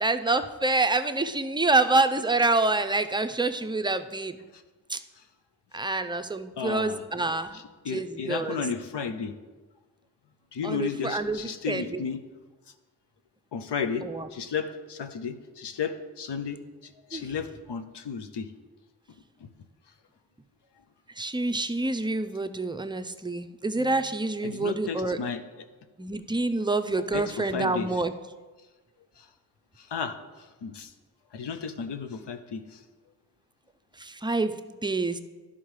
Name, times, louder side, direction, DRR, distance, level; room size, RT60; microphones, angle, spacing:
voice 1, 0.0-4.4 4.9-5.0 5.7-7.6 7.9-8.6 10.6-12.0 14.0-14.3 17.1-17.2 21.2-25.2 26.0-28.1 34.0-35.2, right 3 dB, 10° right, 9 dB, 0.5 m, -27 dB
voice 2, 6.6-7.0 7.5-9.3 10.5-12.2 13.5-14.0 14.3-18.5 24.4-25.7 27.1-27.9 29.2-29.3 29.8-30.2 30.6-30.9 31.3-32.8, left 6 dB, 85° left, 8 dB, 0.6 m, -33 dB
11.0 x 3.7 x 4.7 m, 1.3 s
cardioid pair, 40°, 40 cm